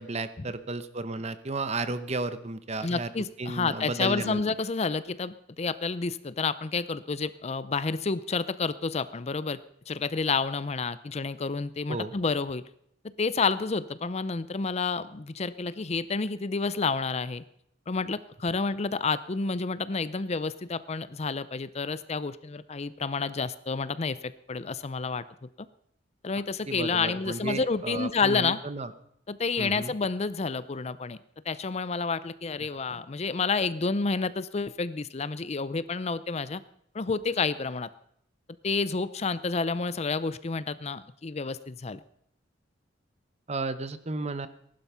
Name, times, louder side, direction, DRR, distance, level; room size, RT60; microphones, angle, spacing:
voice 1, 0.0-3.1 3.4-4.4 11.9-12.1 26.7-28.9 29.6-29.9 43.5-44.5, right 3 dB, 35° right, 12 dB, 0.9 m, -33 dB
voice 2, 2.8-9.6 9.9-12.6 13.2-17.4 17.9-25.2 25.6-25.7 26.2-28.6 29.3-31.2 31.5-36.6 36.9-37.9 38.6-42.0, left 4 dB, 35° left, 15 dB, 0.5 m, -29 dB
18.5 x 11.5 x 5.7 m, 0.72 s
head